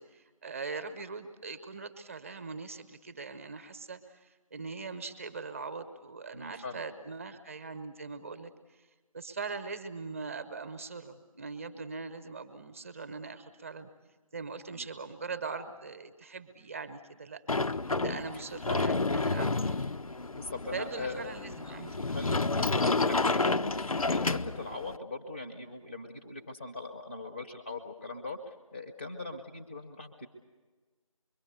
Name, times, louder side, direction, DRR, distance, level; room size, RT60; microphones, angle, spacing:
voice 1, 0.0-8.5 9.1-13.9 14.3-17.4 18.0-19.8 20.7-22.2, right 4 dB, 25° right, 9 dB, 1.1 m, -41 dB
voice 2, 6.3-6.8 14.7-14.9 17.9-18.1 18.6-18.8 20.3-21.3 22.1-30.3, left 3 dB, 10° left, 4 dB, 0.8 m, -41 dB
Sliding door, 17.5-25.0, left 3 dB, 80° left, 0.7 m, -30 dB
25.5 x 23.0 x 6.9 m, 1.4 s
figure-of-eight pair, 165°, 18 cm